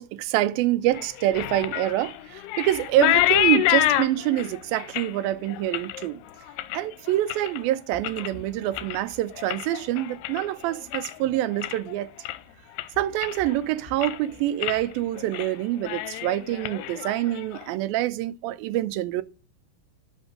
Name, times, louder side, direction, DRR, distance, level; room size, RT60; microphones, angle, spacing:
voice 1, 0.0-6.2 6.7-12.1 13.0-19.2, right 14 dB, 80° right, 2.2 m, -26 dB
sound 1, 0.9-7.6 7.9-8.4 8.7-11.2 11.5-11.9 12.2-12.4 12.8-13.6 13.9-14.3 14.6-14.8 15.1-15.5 15.8-17.6, left 14 dB, 85° left, 2.8 m, -28 dB
11.0 x 6.2 x 6.0 m
omnidirectional pair, 4.8 m